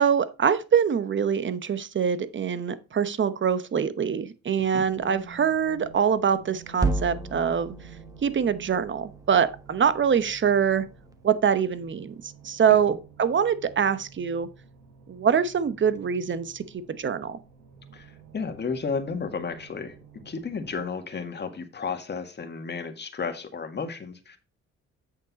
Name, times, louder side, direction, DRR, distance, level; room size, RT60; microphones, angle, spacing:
voice 1, 0.0-7.7 8.2-10.9 11.2-14.5 15.1-16.6 17.0-17.4, right 7 dB, 40° right, 1.0 m, -24 dB
sound 1, 4.8-20.8, right 4 dB, 80° right, 4.1 m, -50 dB
sound 2, 6.8-11.1, right 3 dB, 10° right, 1.3 m, -34 dB
voice 2, 17.9-24.4, left 5 dB, 35° left, 1.8 m, -33 dB
8.2 x 6.7 x 4.1 m
cardioid pair, 90°, 30 cm